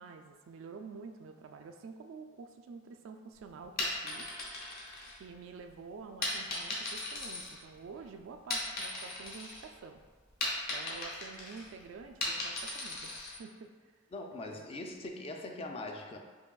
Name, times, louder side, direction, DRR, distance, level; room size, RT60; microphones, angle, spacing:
voice 1, 0.0-4.3 5.1-10.0 10.7-13.7 14.4-14.6, right 5 dB, 75° right, 6 dB, 0.3 m, -48 dB
sound 1, 3.6-5.6 6.2-8.0 8.3-9.7 10.0-13.4, left 2 dB, 50° left, 0.9 m, -37 dB
voice 2, 14.1-16.2, left 2 dB, 30° left, 3 dB, 0.3 m, -41 dB
4.7 x 2.9 x 2.3 m, 1.4 s
head